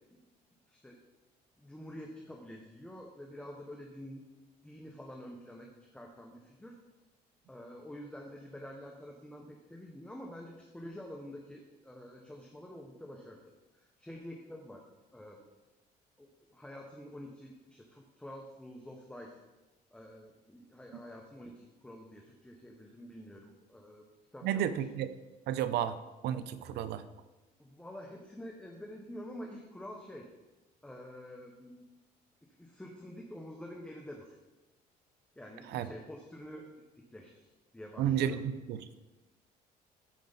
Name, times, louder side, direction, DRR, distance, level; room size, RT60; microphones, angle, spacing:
voice 1, 0.7-1.0 1.6-4.2 4.6-6.8 7.5-13.4 13.7-14.8 15.1-15.4 16.2-19.4 19.9-24.1 24.3-24.8 27.6-30.3 30.8-31.8 32.6-34.4 35.4-36.7 37.1-38.4, equal, 5° left, 0 dB, 1.0 m, -48 dB
voice 2, 24.4-25.1 25.5-26.0 26.2-27.0 35.7-35.9 38.0-38.4 38.7-38.8, right 10 dB, 75° right, 12 dB, 0.7 m, -31 dB
13.5 x 5.0 x 4.1 m, 1.1 s
cardioid pair, 110°, 17 cm